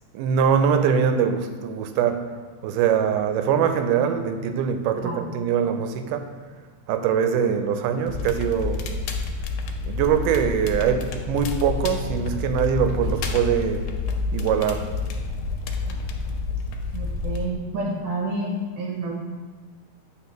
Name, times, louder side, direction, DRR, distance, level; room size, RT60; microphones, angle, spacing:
voice 1, 0.1-2.3 2.6-6.4 6.9-8.9 9.8-13.9 14.3-15.0, right 7 dB, 85° right, 2.1 m, -23 dB
Crackle, 8.1-17.5, left 3 dB, 85° left, 2.1 m, -29 dB
voice 2, 16.9-19.1, right 2 dB, 70° right, 1.5 m, -29 dB
9.0 x 3.9 x 3.0 m
omnidirectional pair, 3.6 m